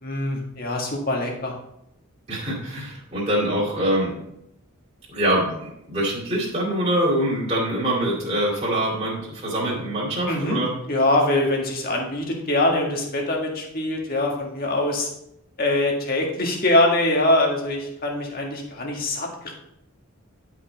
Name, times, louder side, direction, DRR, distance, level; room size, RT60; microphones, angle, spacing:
voice 1, 0.0-1.5 10.2-15.1 15.6-19.5, left 1 dB, 40° left, 0 dB, 1.7 m, -23 dB
voice 2, 2.3-4.1 5.1-10.7, right 1 dB, 30° right, -6 dB, 2.5 m, -24 dB
11.0 x 5.3 x 3.9 m, 0.80 s
head